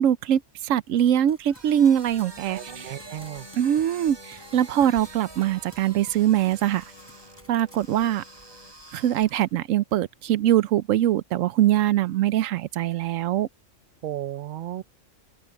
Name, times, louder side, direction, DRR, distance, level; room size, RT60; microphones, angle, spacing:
voice 1, 0.0-2.9 3.5-6.8 7.5-8.2 8.9-13.5, right 11 dB, 90° right, 1.0 m, -22 dB
Run, 1.0-6.3 6.5-8.3, equal, 10° left, 6.1 m, -55 dB
sound 1, 1.4-9.6, right 2 dB, 20° right, 1.4 m, -47 dB
sound 2, 2.2-8.7, left 3 dB, 30° left, 1.9 m, -52 dB
voice 2, 2.5-3.5 14.0-14.8, right 12 dB, 55° right, 0.6 m, -34 dB
open air
omnidirectional pair, 1.3 m